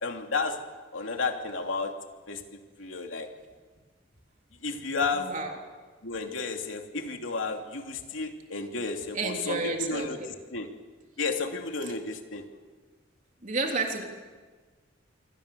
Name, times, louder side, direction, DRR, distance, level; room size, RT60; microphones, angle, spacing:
voice 1, 0.0-0.6 0.9-1.9 2.3-2.4 2.8-3.3 4.6-5.3 6.0-10.2 10.5-10.7 11.2-12.4, left 4 dB, 75° left, 3 dB, 3.0 m, -32 dB
voice 2, 5.1-5.6 9.1-10.3 11.8-11.9 13.4-14.0, right 3 dB, 40° right, 2 dB, 3.5 m, -31 dB
27.0 x 25.0 x 7.0 m, 1.4 s
head